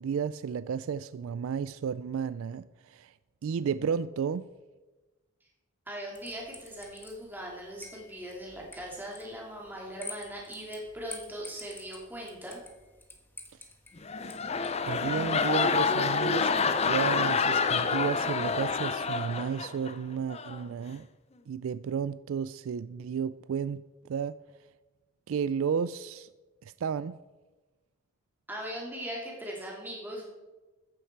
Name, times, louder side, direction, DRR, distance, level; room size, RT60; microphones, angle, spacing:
voice 1, 0.0-3.1 3.4-4.5 14.9-21.1 21.5-23.8 24.1-24.4 25.3-26.3 26.6-27.2, right 7 dB, 65° right, 0.3 m, -32 dB
voice 2, 5.9-12.6 28.5-30.3, equal, 10° right, 2.7 m, -40 dB
sound 1, 6.2-15.0, left 2 dB, 10° left, 1.2 m, -50 dB
sound 2, 14.0-19.9 20.3-20.6, left 5 dB, 30° left, 0.5 m, -28 dB
14.0 x 10.0 x 4.6 m
head